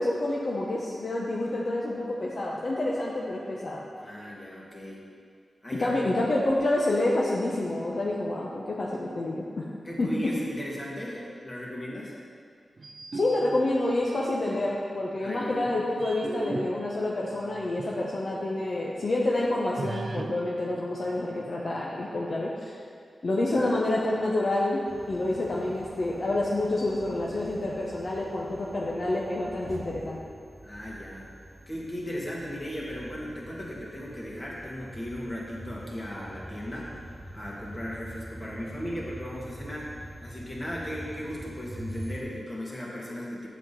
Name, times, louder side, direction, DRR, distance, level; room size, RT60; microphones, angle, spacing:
voice 1, 0.0-3.8 5.8-9.7 10.0-10.1 13.1-22.8 23.2-24.8 25.1-30.2, left 2 dB, 60° left, -4 dB, 0.9 m, -28 dB
voice 2, 4.0-5.0 5.6-6.1 9.8-12.2 15.2-15.6 23.5-23.8 30.6-31.3 31.7-37.0 37.3-39.9 40.2-43.5, equal, 30° left, -4 dB, 2.0 m, -37 dB
sound 1, 12.8-14.6 15.2-18.2 18.6-18.7 19.8-21.8, right 3 dB, 50° right, 0.5 m, -40 dB
sound 2, 24.9-42.2, right 1 dB, 20° right, 1.6 m, -45 dB
7.6 x 7.2 x 4.2 m, 2.2 s
wide cardioid pair, 70°, 0 cm